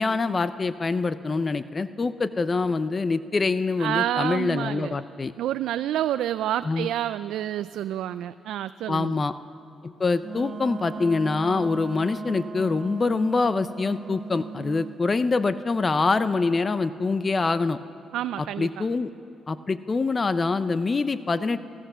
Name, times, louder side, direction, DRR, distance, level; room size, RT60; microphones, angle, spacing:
voice 1, 0.0-5.3 6.6-6.9 8.9-9.3 9.8-17.8 18.6-19.1 19.5-21.6, left 3 dB, 30° left, 13 dB, 0.6 m, -25 dB
voice 2, 3.8-5.0 5.4-9.2 18.1-18.8, right 12 dB, 80° right, 12 dB, 0.4 m, -28 dB
Wind instrument woodwind instrument, 10.2-15.0, right 5 dB, 40° right, 1.2 m, -37 dB
25.5 x 15.0 x 6.9 m, 2.7 s
cardioid pair, 90°, 0 cm